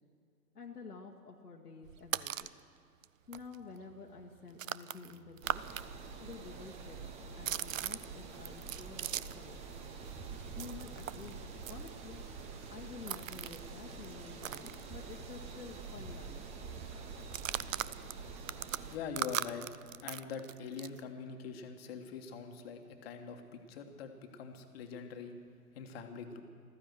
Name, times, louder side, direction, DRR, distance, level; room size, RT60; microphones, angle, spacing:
voice 1, 0.5-2.5 3.3-5.6 6.2-7.0 7.4-9.6 10.5-11.4 11.7-12.2 12.7-16.5, left 4 dB, 80° left, 0 dB, 1.4 m, -50 dB
sound 1, 1.8-2.6 3.0-3.1 3.3-5.9 6.1-9.5 9.8-15.4 15.7-15.8 16.1-16.5 17.2-21.0, right 11 dB, 60° right, 0.5 m, -40 dB
sound 2, 5.4-19.0, right 4 dB, 15° right, 0.8 m, -46 dB
voice 2, 18.9-19.7 20.0-25.4 25.7-26.4, left 6 dB, 40° left, 6 dB, 1.5 m, -43 dB
15.0 x 14.0 x 6.2 m, 2.3 s
figure-of-eight pair, 120°, 46 cm